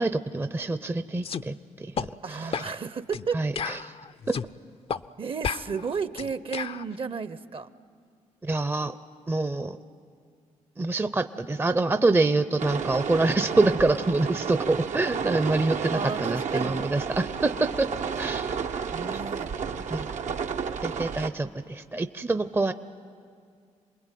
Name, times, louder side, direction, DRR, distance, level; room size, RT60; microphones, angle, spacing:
voice 1, 0.0-2.1 3.3-3.9 4.3-4.4 8.4-8.9 9.3-9.8 10.8-17.9 18.2-18.7 19.9-20.1 20.8-22.7, right 2 dB, 15° right, 12 dB, 0.6 m, -26 dB
sound 1, 1.2-1.4 2.0-2.1 2.5-2.7 3.1-3.3 3.6-4.5 4.9-5.0 5.4-6.8, left 6 dB, 45° left, 0.6 m, -32 dB
voice 2, 2.2-3.4 5.2-7.7 15.9-16.9 18.6-18.7 18.9-19.5, right 5 dB, 45° right, 15 dB, 0.9 m, -33 dB
sound 2, 12.6-21.3, right 6 dB, 70° right, 1.0 m, -31 dB
28.0 x 20.5 x 9.3 m, 2.3 s
cardioid pair, 70°, 13 cm